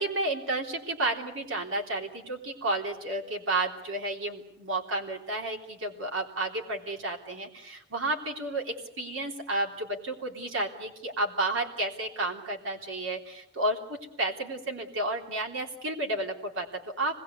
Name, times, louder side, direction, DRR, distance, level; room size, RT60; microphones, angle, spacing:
voice 1, 0.0-17.2, right 2 dB, 85° right, 1 dB, 3.6 m, -32 dB
26.5 x 20.5 x 8.2 m, 0.78 s
head